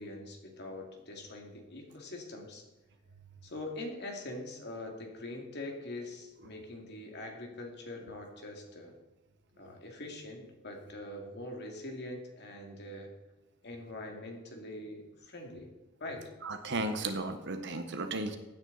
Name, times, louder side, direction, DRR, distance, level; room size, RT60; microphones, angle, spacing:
voice 1, 0.0-2.6 3.4-8.9 9.6-13.1 13.6-15.7 16.0-16.2, left 1 dB, 55° left, 2 dB, 2.5 m, -43 dB
voice 2, 16.4-18.4, right 2 dB, 55° right, 7 dB, 1.3 m, -34 dB
16.0 x 9.5 x 4.1 m, 1.1 s
head